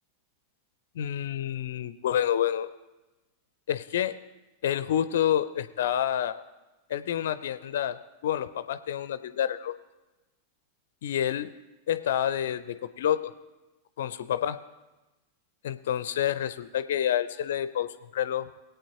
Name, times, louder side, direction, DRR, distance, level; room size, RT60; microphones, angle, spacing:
voice 1, 1.0-2.7 3.7-4.2 4.6-6.4 6.9-9.8 11.0-11.5 11.9-13.3 14.0-14.6 15.6-18.5, left 10 dB, 60° left, 14 dB, 0.4 m, -28 dB
20.0 x 8.5 x 2.9 m, 1.1 s
figure-of-eight pair, 90°, 0 cm